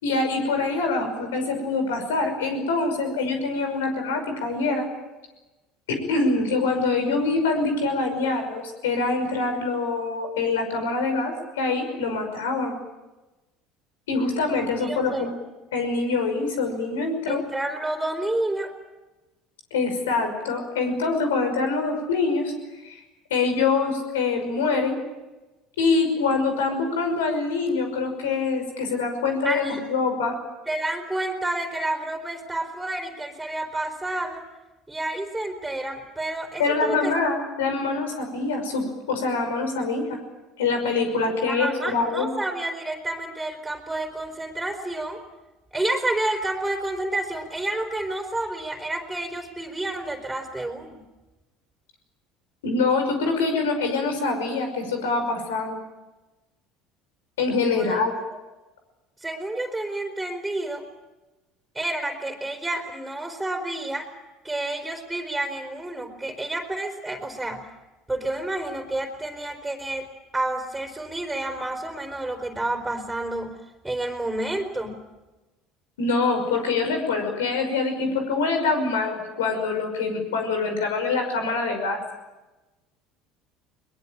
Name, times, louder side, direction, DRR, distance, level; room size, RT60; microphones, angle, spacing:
voice 1, 0.0-4.9 5.9-12.8 14.1-15.3 15.7-17.4 19.7-23.0 23.3-25.0 25.8-30.4 36.6-40.2 40.6-42.3 52.6-55.8 57.4-58.1 76.0-82.0, left 4 dB, 85° left, 5 dB, 5.7 m, -25 dB
voice 2, 14.8-15.3 17.3-18.7 29.4-29.8 30.7-34.5 34.9-37.1 41.5-45.2 45.7-51.0 57.7-58.0 59.2-60.9 61.7-64.1 64.4-67.7 68.1-73.6 73.8-75.0, right 2 dB, 10° right, 2 dB, 4.0 m, -29 dB
22.0 x 21.0 x 8.9 m, 1.1 s
hypercardioid pair, 75°, 0 cm